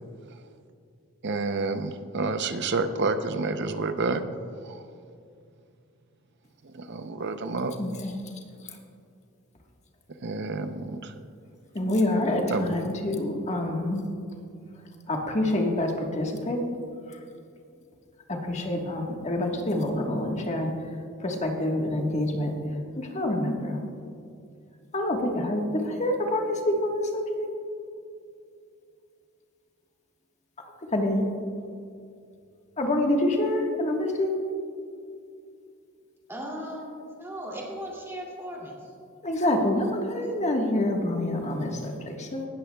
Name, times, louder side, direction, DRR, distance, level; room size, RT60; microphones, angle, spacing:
voice 1, 1.2-4.2 4.6-4.8 6.6-7.7 10.2-11.1 12.5-12.8, right 3 dB, 55° right, 9 dB, 0.6 m, -29 dB
voice 2, 7.8-8.1 11.7-14.0 15.1-16.6 17.1-17.2 18.3-20.7 21.2-22.5 23.0-23.8 24.9-27.5 30.9-31.2 32.8-34.3 39.2-42.5, left 1 dB, 35° left, 1 dB, 1.4 m, -27 dB
voice 3, 36.3-38.9, equal, 10° right, -2 dB, 2.5 m, -37 dB
18.5 x 13.0 x 2.3 m, 2.4 s
head